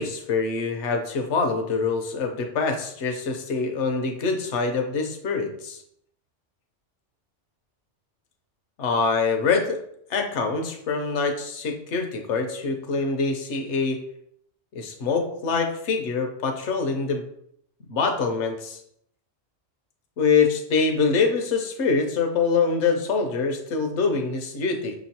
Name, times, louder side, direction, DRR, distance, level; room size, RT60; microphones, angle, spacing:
voice 1, 0.0-5.8 8.8-9.8 10.1-14.0 14.7-17.2 17.9-18.8 20.2-24.9, left 4 dB, 70° left, 4 dB, 1.0 m, -24 dB
5.7 x 3.0 x 2.8 m, 0.71 s
omnidirectional pair, 1.3 m